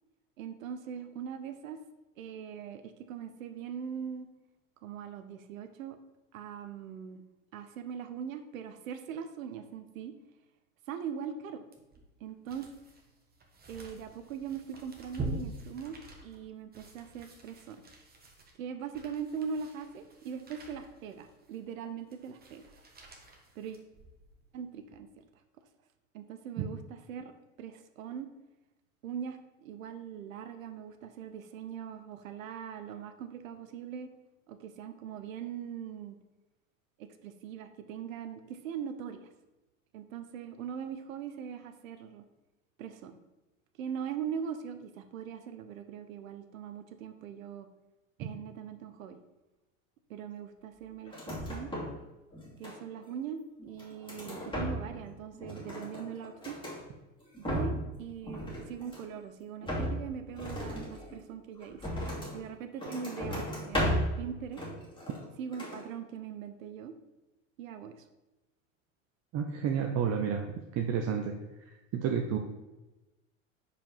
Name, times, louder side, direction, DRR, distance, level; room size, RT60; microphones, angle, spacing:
voice 1, 0.4-1.8 2.2-4.3 4.8-6.0 6.3-7.2 7.5-10.1 10.9-11.6 12.2-12.7 13.7-17.8 18.6-22.7 23.6-23.8 24.5-25.2 26.1-28.3 29.0-34.1 34.5-36.2 37.0-39.3 39.9-42.2 42.8-43.2 43.8-47.7 48.2-49.2 50.1-51.7 52.6-56.6 57.4-62.0 62.3-64.6 65.4-66.9 67.6-68.0, right 7 dB, 80° right, 9 dB, 0.8 m, -41 dB
sound 1, 11.7-24.4 24.8-25.0, right 2 dB, 25° right, 1.5 m, -46 dB
sound 2, 51.1-52.0 52.3-53.1 53.6-55.1 55.3-56.8 57.2-57.9 58.2-59.2 59.6-62.4 62.8-64.2 64.5-65.3 65.5-65.8, equal, 10° left, 2.4 m, -35 dB
voice 2, 69.3-70.4 70.8-71.3 71.9-72.4, right 7 dB, 40° right, 3 dB, 0.8 m, -30 dB
5.1 x 4.7 x 5.4 m, 1.1 s
hypercardioid pair, 90°, 40 cm